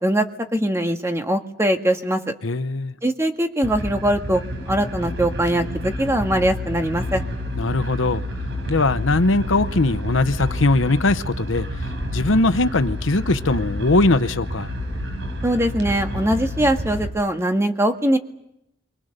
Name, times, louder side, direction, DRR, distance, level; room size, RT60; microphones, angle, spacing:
voice 1, 0.5-2.3 3.0-4.4 4.7-7.2 15.4-18.2, right 1 dB, 15° right, 1.8 m, -21 dB
voice 2, 2.4-3.0 7.6-8.2 8.7-11.7 12.1-14.7, left 2 dB, 90° left, 0.9 m, -20 dB
sound 1, 3.6-17.1, equal, 70° right, 5.1 m, -29 dB
29.5 x 24.5 x 6.7 m
head